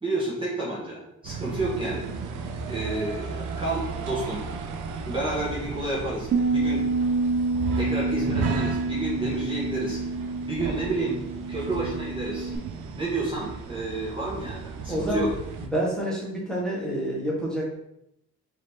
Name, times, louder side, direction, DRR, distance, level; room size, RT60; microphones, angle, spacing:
voice 1, 0.0-2.1 2.7-4.4 5.0-6.8 7.7-10.0 10.5-11.2 11.5-12.5 12.9-15.3, right 2 dB, 15° right, -6 dB, 1.2 m, -30 dB
sound 1, 1.2-15.7, right 5 dB, 85° right, 0.6 m, -35 dB
Bass guitar, 6.3-12.6, right 3 dB, 35° right, 0.6 m, -28 dB
voice 2, 14.9-15.3 15.7-17.7, equal, ahead, -5 dB, 1.4 m, -28 dB
3.9 x 3.0 x 3.4 m, 0.80 s
cardioid pair, 90°, 30 cm